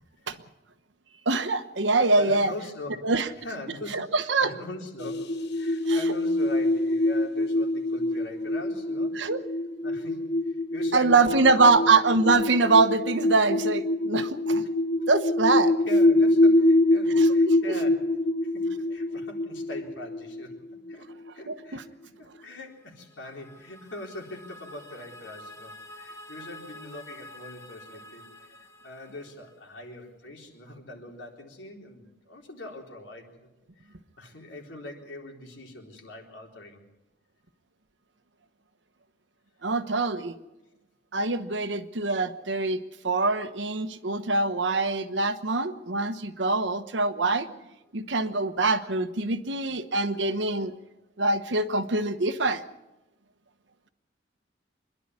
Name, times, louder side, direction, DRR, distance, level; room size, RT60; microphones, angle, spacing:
voice 1, 1.2-2.5 3.0-3.3 3.9-4.5 5.9-6.0 9.1-9.4 10.9-14.6 15.1-15.7 17.1-17.8 21.5-21.8 39.6-40.4 41.1-42.8 43.0-47.5 47.9-50.7 51.2-52.6, right 3 dB, 70° right, 11 dB, 1.1 m, -24 dB
voice 2, 2.1-3.1 3.4-9.1 9.8-11.7 15.9-18.0 18.4-18.5 18.9-20.6 20.9-21.1 21.3-21.8 22.2-28.2 28.8-33.5 34.2-36.8, left 2 dB, 75° left, 1 dB, 3.9 m, -41 dB
sound 1, 5.0-21.3, left 1 dB, 60° left, 1.0 m, -25 dB
sound 2, 22.7-29.8, left 1 dB, 15° left, 2.2 m, -48 dB
25.5 x 11.0 x 9.7 m, 0.97 s
head